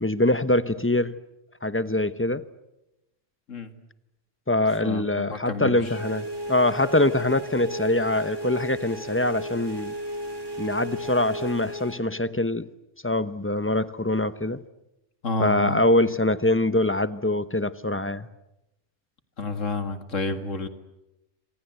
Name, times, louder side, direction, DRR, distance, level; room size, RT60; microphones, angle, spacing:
voice 1, 0.0-1.2 1.6-2.4 4.5-9.9 10.6-12.6 13.0-14.6 15.4-18.3, left 1 dB, 10° left, 13 dB, 0.8 m, -24 dB
voice 2, 4.8-5.9 15.2-15.8 19.4-20.7, left 3 dB, 85° left, 8 dB, 2.5 m, -30 dB
sound 1, 5.8-12.0, equal, 20° right, 3.9 m, -34 dB
28.0 x 26.5 x 8.0 m, 0.94 s
omnidirectional pair, 1.3 m